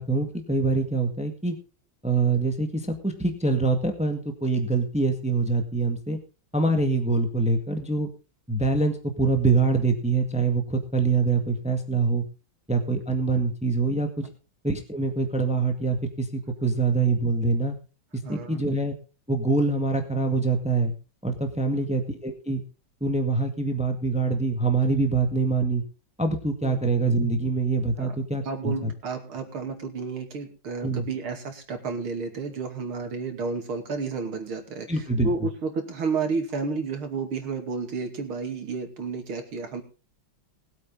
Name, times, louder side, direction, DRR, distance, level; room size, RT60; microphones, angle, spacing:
voice 1, 0.0-1.6 2.0-6.2 6.5-8.1 8.5-12.2 12.7-14.3 14.6-17.7 18.3-18.9 19.3-20.9 21.2-22.6 23.0-25.8 26.2-28.9 30.8-31.1 34.9-35.3, right 3 dB, 5° right, 6 dB, 1.7 m, -24 dB
voice 2, 18.2-18.6 21.7-21.9 26.6-26.8 28.0-28.1 28.4-34.9 35.2-39.8, right 4 dB, 75° right, 5 dB, 3.3 m, -31 dB
20.5 x 8.4 x 3.8 m, 0.33 s
omnidirectional pair, 2.3 m